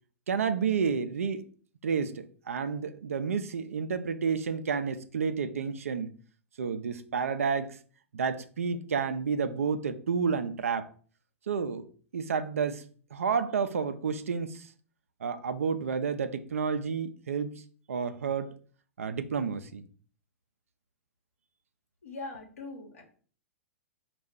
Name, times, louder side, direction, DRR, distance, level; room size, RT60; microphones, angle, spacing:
voice 1, 0.3-1.5 1.8-6.1 6.6-7.8 8.1-10.9 11.5-11.9 12.1-12.8 13.1-14.7 15.2-17.5 17.9-18.5 19.0-19.8, right 6 dB, 70° right, 0.5 m, -30 dB
voice 2, 22.0-23.0, left 3 dB, 75° left, 1.0 m, -41 dB
5.4 x 2.4 x 3.5 m
figure-of-eight pair, 105°, 8 cm